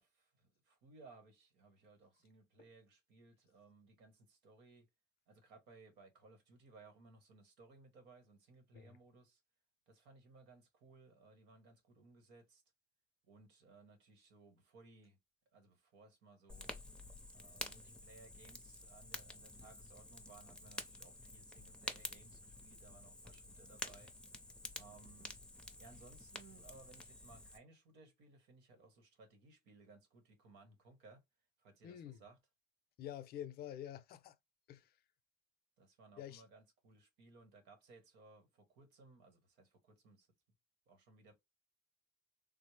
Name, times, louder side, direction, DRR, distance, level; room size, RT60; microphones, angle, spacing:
voice 1, 0.0-4.9 5.3-9.4 9.9-12.6 13.3-15.2 15.5-16.8 17.3-24.1 24.7-25.3 25.8-31.2 31.6-32.4 35.8-40.3 40.9-41.4, right 3 dB, 85° right, 1.1 m, -62 dB
Fire, 16.5-27.6, left 2 dB, 5° left, 0.6 m, -50 dB
voice 2, 31.8-32.2 33.0-34.4 34.7-35.0 36.2-36.4, left 11 dB, 65° left, 0.5 m, -48 dB
3.5 x 2.0 x 3.1 m
cardioid pair, 110°, 17 cm